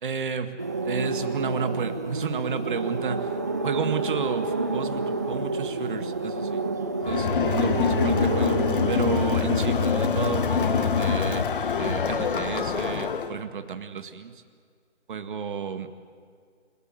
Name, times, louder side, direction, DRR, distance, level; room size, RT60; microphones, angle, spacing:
voice 1, 0.0-0.6 0.8-3.3 3.6-6.6 6.9-8.6 8.9-11.5 11.8-14.4 15.1-15.9, right 6 dB, 45° right, 8 dB, 1.9 m, -32 dB
sound 1, 0.6-9.9, right 3 dB, 15° right, 0.5 m, -29 dB
Crowd, 7.0-13.3, left 6 dB, 45° left, 1.5 m, -25 dB
29.5 x 18.5 x 7.9 m, 2.1 s
hypercardioid pair, 160°, 36 cm